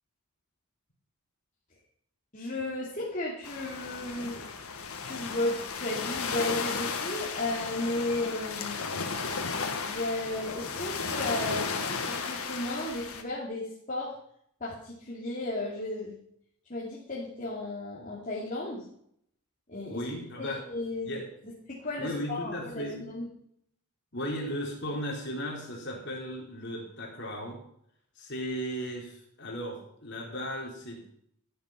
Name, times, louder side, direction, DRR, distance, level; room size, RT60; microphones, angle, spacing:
voice 1, 2.3-4.5 5.0-8.9 9.8-14.1 14.6-16.2 16.7-18.9 19.7-20.0 20.4-21.1 21.7-23.3, left 2 dB, 35° left, -5 dB, 2.7 m, -34 dB
sound 1, 3.4-13.2, left 5 dB, 80° left, 1.7 m, -34 dB
voice 2, 19.9-20.6 21.1-21.2 22.0-23.0 24.1-27.6 28.2-31.1, equal, 50° left, -1 dB, 3.9 m, -36 dB
14.0 x 9.2 x 5.8 m, 0.70 s
head